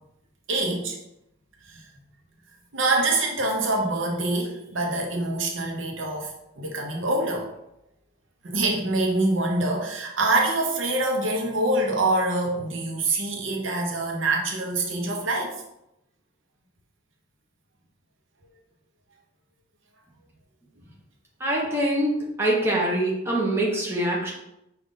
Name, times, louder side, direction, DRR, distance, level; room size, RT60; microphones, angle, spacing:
voice 1, 0.5-1.0 1.7-1.8 2.7-7.5 8.4-15.5, right 2 dB, 75° right, 1 dB, 0.8 m, -25 dB
voice 2, 21.4-24.3, right 1 dB, 10° right, -4 dB, 0.9 m, -24 dB
4.9 x 2.5 x 3.8 m, 0.83 s
head